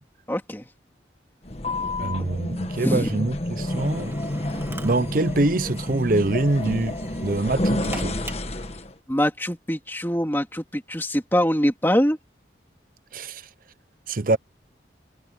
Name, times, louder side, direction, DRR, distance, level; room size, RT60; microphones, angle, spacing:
voice 1, 0.3-0.7 2.8-3.1 9.1-12.2, equal, 10° left, 2.4 m, -23 dB
sound 1, 1.4-8.9, left 1 dB, 35° left, 1.5 m, -29 dB
voice 2, 2.0-4.2 4.8-8.2 13.1-13.4 14.1-14.4, right 2 dB, 50° right, 0.8 m, -24 dB
Drill, 3.7-8.8, right 1 dB, 15° right, 2.2 m, -42 dB
head